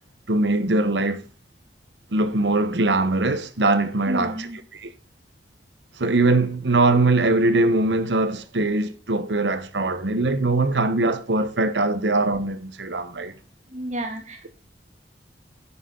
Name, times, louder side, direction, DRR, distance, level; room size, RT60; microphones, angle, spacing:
voice 1, 0.3-1.2 2.1-4.3 4.8-4.9 6.0-13.3, right 2 dB, 80° right, 1.1 m, -21 dB
voice 2, 4.0-4.6 13.7-14.5, right 1 dB, 40° right, 2.3 m, -31 dB
10.0 x 8.2 x 3.9 m
head